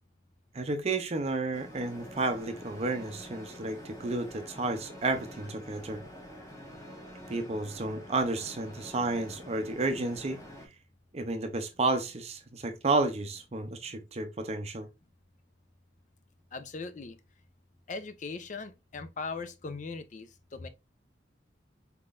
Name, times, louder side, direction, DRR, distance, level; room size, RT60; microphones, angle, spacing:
voice 1, 0.5-6.0 7.3-10.4 11.1-14.9, right 2 dB, 35° right, 0.5 m, -31 dB
sound 1, 1.5-10.7, equal, 15° left, 1.3 m, -47 dB
voice 2, 16.5-17.2 17.9-20.7, left 4 dB, 45° left, 0.5 m, -39 dB
4.4 x 3.7 x 2.4 m
head